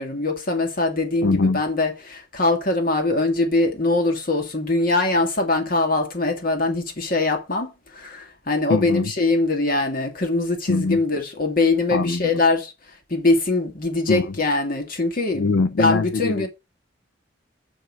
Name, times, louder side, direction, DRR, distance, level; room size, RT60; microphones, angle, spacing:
voice 1, 0.0-12.7 13.1-16.5, left 2 dB, 50° left, 2.1 m, -22 dB
voice 2, 1.2-1.6 8.7-9.1 10.7-11.0 11.9-12.4 14.1-14.3 15.3-16.5, left 3 dB, 75° left, 0.5 m, -22 dB
6.4 x 5.1 x 6.2 m
head